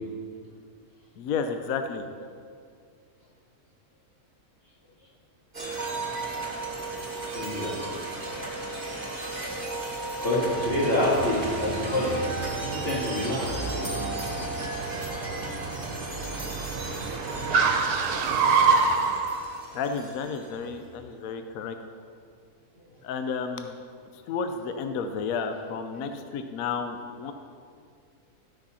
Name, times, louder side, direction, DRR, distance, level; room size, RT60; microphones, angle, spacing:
voice 1, 1.2-2.0 19.7-21.8 23.0-23.7 24.3-27.3, left 5 dB, 70° left, 7 dB, 1.0 m, -31 dB
sound 1, 5.5-20.7, right 2 dB, 30° right, 1.6 m, -35 dB
voice 2, 7.3-7.8 10.2-12.2 12.5-14.0 25.9-26.0, left 1 dB, 35° left, -7 dB, 2.5 m, -27 dB
Car, 10.5-19.4, right 4 dB, 80° right, 1.3 m, -28 dB
13.0 x 6.1 x 4.2 m, 2.2 s
omnidirectional pair, 1.6 m